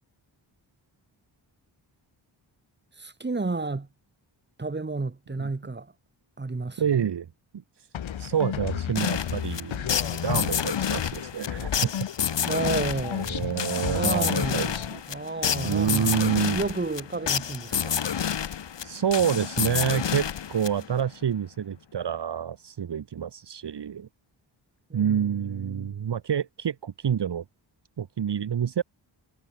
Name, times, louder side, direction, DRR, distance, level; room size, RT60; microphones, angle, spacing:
voice 1, 3.0-3.9 4.6-5.9 6.4-7.1 12.5-13.4 13.9-16.2 16.5-18.0 24.9-25.9, right 3 dB, 25° right, 5.3 m, -32 dB
voice 2, 6.8-7.3 8.2-12.1 13.2-15.0 15.6-16.6 18.8-24.1 24.9-27.4 28.0-28.8, right 8 dB, 60° right, 2.4 m, -28 dB
sound 1, 7.9-12.4 12.6-15.0, left 9 dB, 90° left, 2.6 m, -33 dB
sound 2, 9.0-21.1, left 8 dB, 65° left, 3.6 m, -29 dB
wide cardioid pair, 145°, 45 cm